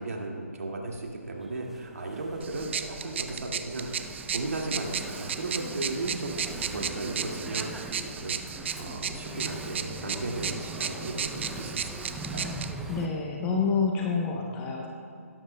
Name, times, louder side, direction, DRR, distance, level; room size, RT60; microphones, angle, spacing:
voice 1, 0.0-12.6, right 2 dB, 75° right, 0 dB, 2.1 m, -36 dB
Engine / Mechanisms, 0.9-13.1, right 2 dB, 5° right, 0.5 m, -41 dB
sound 1, 2.4-12.7, right 7 dB, 50° right, 0.6 m, -35 dB
voice 2, 12.9-14.9, left 5 dB, 15° left, 0 dB, 0.8 m, -28 dB
16.5 x 13.0 x 2.2 m, 2.6 s
hypercardioid pair, 155°, 8 cm